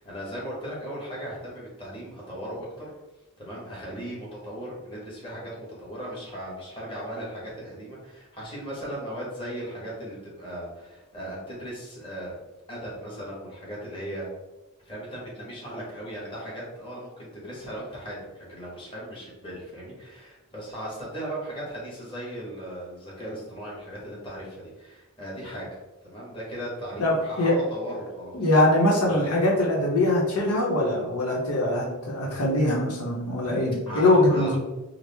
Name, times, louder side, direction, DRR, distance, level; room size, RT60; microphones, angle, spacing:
voice 1, 0.0-2.9 3.4-12.3 12.7-14.3 14.8-25.7 26.0-28.5 29.1-29.3 33.9-34.6, equal, 25° left, -6 dB, 1.4 m, -37 dB
voice 2, 27.0-27.5 28.3-34.6, left 1 dB, 85° left, -3 dB, 0.9 m, -22 dB
4.8 x 2.1 x 3.4 m, 1.1 s
head